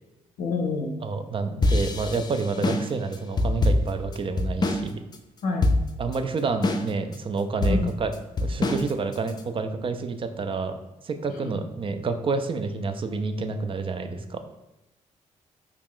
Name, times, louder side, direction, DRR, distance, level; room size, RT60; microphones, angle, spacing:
voice 1, 0.4-1.0 1.6-1.7 2.6-2.7 5.4-5.7 7.7-7.9 11.3-11.5, left 3 dB, 85° left, 2 dB, 0.6 m, -28 dB
voice 2, 1.0-5.0 6.0-8.1 8.4-10.8 11.0-14.4, right 4 dB, 40° right, 8 dB, 0.4 m, -29 dB
sound 1, 1.6-4.9 5.1-5.2 5.6-6.2 6.6-7.2 7.6-9.4, left 2 dB, 30° left, 0.4 m, -24 dB
3.0 x 2.4 x 3.6 m, 0.95 s
supercardioid pair, 65°, 14 cm